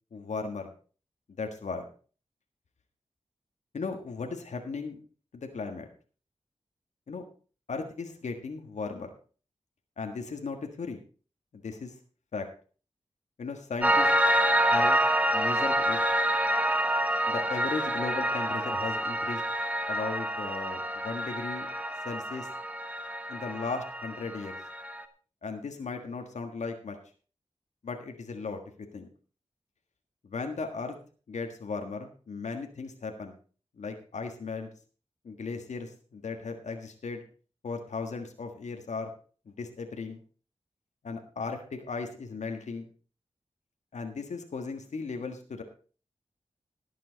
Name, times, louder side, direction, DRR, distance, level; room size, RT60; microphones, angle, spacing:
voice 1, 0.1-0.7 1.4-1.8 3.7-5.0 5.3-5.9 7.1-7.2 7.7-9.1 10.0-11.0 11.5-11.9 12.3-12.5 13.4-14.1 14.6-15.0 15.3-16.0 17.3-19.4 19.9-21.7 22.0-22.5 23.3-24.6 25.4-27.0 27.8-28.6 28.9-29.1 30.2-31.0 31.3-33.3 33.8-34.7 35.2-37.2 37.6-39.1 39.4-40.2 41.0-42.9 43.9-45.6, left 4 dB, 85° left, 5 dB, 1.6 m, -36 dB
Piano, 13.8-25.0, right 1 dB, 10° right, 1.2 m, -27 dB
17.5 x 7.6 x 4.0 m, 0.38 s
wide cardioid pair, 80°, 12 cm